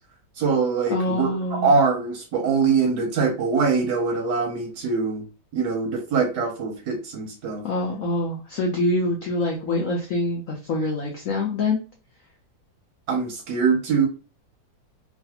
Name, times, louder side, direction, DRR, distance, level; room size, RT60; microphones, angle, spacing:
voice 1, 0.4-5.2 5.5-7.6 13.1-14.1, right 5 dB, 70° right, 2 dB, 1.0 m, -23 dB
voice 2, 0.9-1.8 7.6-11.8, left 2 dB, 90° left, 0 dB, 0.7 m, -25 dB
3.1 x 2.3 x 2.8 m, 0.35 s
omnidirectional pair, 2.1 m